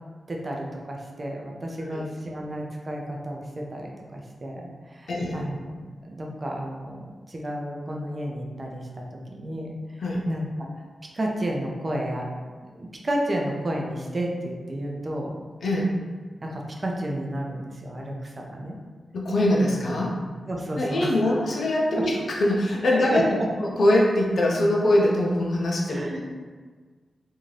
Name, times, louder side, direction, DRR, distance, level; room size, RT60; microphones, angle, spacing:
voice 1, 0.3-9.7 10.3-10.7 11.1-12.3 12.6-15.4 16.4-18.8 20.5-21.2 21.9-22.0 22.9-23.5 25.9-26.2, right 1 dB, 45° right, 0 dB, 0.5 m, -31 dB
voice 2, 5.1-5.5 10.0-10.3 15.6-15.9 19.1-20.2 20.8-23.2 23.6-26.1, left 1 dB, 75° left, -2 dB, 0.5 m, -23 dB
2.6 x 2.3 x 3.1 m, 1.5 s
cardioid pair, 50°, 0 cm